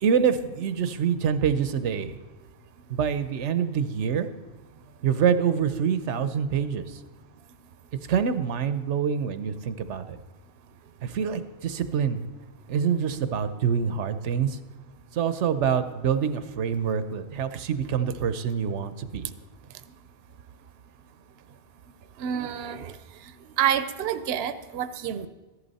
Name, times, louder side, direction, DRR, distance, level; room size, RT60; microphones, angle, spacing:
voice 1, 0.0-2.1 2.9-4.3 5.0-7.0 8.1-10.2 11.0-12.3 12.7-14.6 15.1-19.3, right 7 dB, 90° right, 12 dB, 1.1 m, -26 dB
voice 2, 22.2-23.0 23.6-25.3, right 10 dB, 65° right, 12 dB, 0.8 m, -28 dB
14.0 x 11.0 x 4.1 m, 1.2 s
omnidirectional pair, 1.2 m